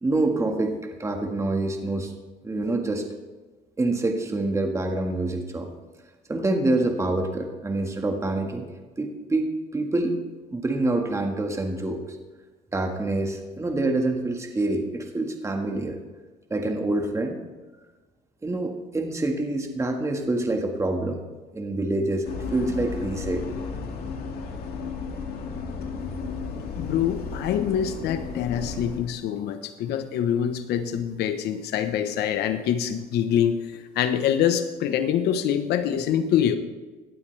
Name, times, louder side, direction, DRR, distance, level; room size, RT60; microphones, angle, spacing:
voice 1, 0.0-2.1 2.4-3.0 3.8-5.7 6.3-8.6 9.0-10.2 10.5-12.0 12.7-16.0 16.5-17.4 18.4-21.2 21.5-22.2 22.5-23.4, right 2 dB, 15° right, 3 dB, 1.6 m, -26 dB
sound 1, 22.2-29.0, left 5 dB, 65° left, 2.4 m, -33 dB
voice 2, 26.8-33.6 34.0-36.6, left 9 dB, 80° left, 9 dB, 1.0 m, -25 dB
17.5 x 12.0 x 3.3 m, 1.3 s
cardioid pair, 110°, 17 cm